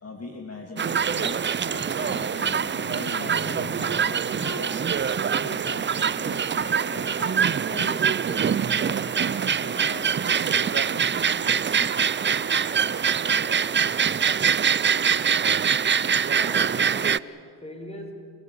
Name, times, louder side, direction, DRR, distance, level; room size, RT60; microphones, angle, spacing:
voice 1, 0.0-7.3 7.7-14.3, left 3 dB, 30° left, 2.8 m, -41 dB
sound 1, 0.8-17.2, right 7 dB, 25° right, 0.5 m, -24 dB
Wind instrument woodwind instrument, 2.0-11.0, left 10 dB, 50° left, 1.0 m, -46 dB
voice 2, 16.3-18.1, left 1 dB, 15° left, 5.7 m, -40 dB
28.0 x 17.0 x 8.7 m
supercardioid pair, 60°, 46 cm